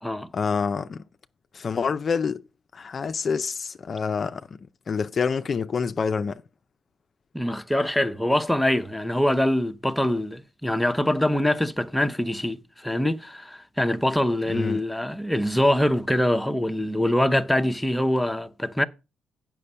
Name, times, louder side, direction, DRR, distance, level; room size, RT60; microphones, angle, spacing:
voice 1, 0.3-1.0 1.5-2.4 2.7-4.6 4.9-6.4 14.5-14.8, left 5 dB, 45° left, 0.5 m, -27 dB
voice 2, 7.3-18.8, left 1 dB, 5° left, 0.8 m, -24 dB
8.3 x 6.0 x 5.5 m
cardioid pair, 90°, 0 cm